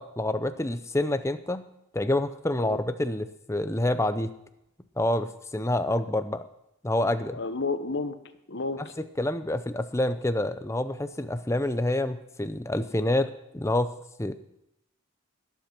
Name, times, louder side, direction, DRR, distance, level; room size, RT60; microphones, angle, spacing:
voice 1, 0.0-1.6 1.9-4.3 5.0-6.4 6.8-7.4 9.2-13.9 14.2-14.3, left 1 dB, 10° left, 11 dB, 0.6 m, -27 dB
voice 2, 7.3-8.2 8.5-8.9, left 3 dB, 50° left, 10 dB, 1.0 m, -31 dB
21.0 x 8.2 x 6.1 m, 0.84 s
head